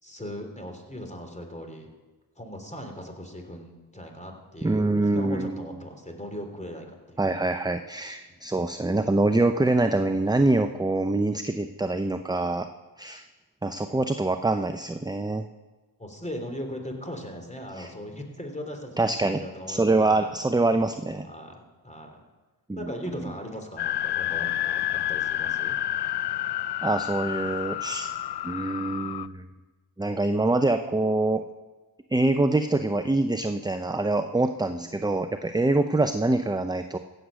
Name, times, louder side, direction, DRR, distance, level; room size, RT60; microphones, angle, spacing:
voice 1, 0.0-1.9 2.4-7.2 8.3-8.5 16.0-20.3 21.2-22.2 22.8-25.8 34.6-34.9, equal, 15° left, 4 dB, 3.3 m, -39 dB
voice 2, 4.6-5.6 7.2-12.7 13.0-13.2 13.6-15.4 17.8-17.9 19.0-19.4 19.7-21.3 22.7-22.8 26.8-28.1 28.4-29.4 30.0-31.4 32.1-37.0, right 2 dB, 10° right, 9 dB, 0.7 m, -25 dB
sound 1, 23.8-29.3, left 12 dB, 55° left, 0.6 m, -29 dB
15.5 x 7.9 x 6.3 m, 1.2 s
supercardioid pair, 45°, 49 cm